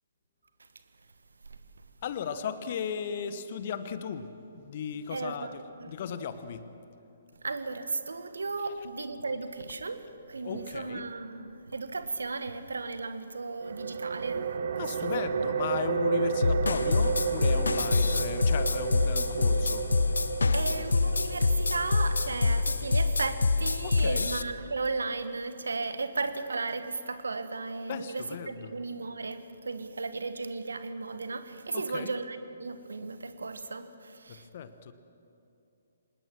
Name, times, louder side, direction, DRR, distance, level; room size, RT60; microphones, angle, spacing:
voice 1, 2.0-5.6 5.9-6.7 10.4-11.0 14.8-19.9 23.8-24.3 27.9-28.7 31.7-32.1 34.3-34.9, left 7 dB, 45° left, 12 dB, 1.2 m, -36 dB
voice 2, 5.1-6.0 7.4-14.4 14.7-15.5 20.5-34.5, right 3 dB, 70° right, 10 dB, 1.5 m, -35 dB
sound 1, 13.6-25.0, right 6 dB, 55° right, 1.0 m, -33 dB
sound 2, 16.4-24.4, left 4 dB, 70° left, 0.7 m, -26 dB
25.0 x 20.0 x 6.2 m, 2.7 s
figure-of-eight pair, 130°, 0 cm